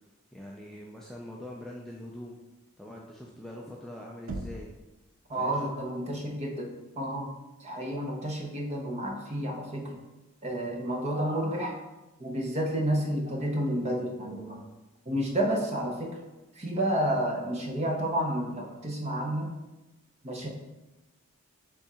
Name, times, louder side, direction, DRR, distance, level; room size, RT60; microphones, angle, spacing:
voice 1, 0.3-2.4 2.8-4.7 5.4-5.7, left 1 dB, ahead, -3 dB, 0.3 m, -43 dB
Knock, 4.3-4.9, right 2 dB, 65° right, 0.5 m, -37 dB
voice 2, 5.3-7.3 7.6-10.0 10.4-11.8 12.2-14.6 15.1-16.2 16.5-19.5 20.2-20.5, right 1 dB, 30° right, 1 dB, 0.7 m, -30 dB
3.6 x 3.5 x 4.2 m, 1.0 s
head